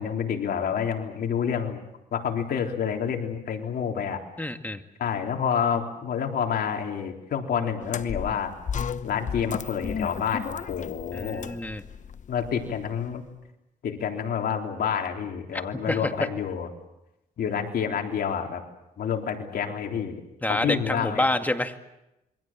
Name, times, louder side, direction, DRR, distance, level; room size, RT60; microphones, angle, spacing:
voice 1, 0.0-1.8 2.1-4.2 5.0-8.5 9.0-11.5 12.3-13.3 13.8-16.7 17.4-18.6 19.0-20.2 20.5-21.3, left 7 dB, 70° left, 3 dB, 3.8 m, -28 dB
voice 2, 4.4-4.8 11.1-11.8 15.9-16.0 20.4-21.7, left 1 dB, 10° left, 6 dB, 2.2 m, -27 dB
sound 1, 7.8-13.1, left 7 dB, 50° left, 1.0 m, -35 dB
27.0 x 23.5 x 7.5 m, 0.91 s
cardioid pair, 80°, 17 cm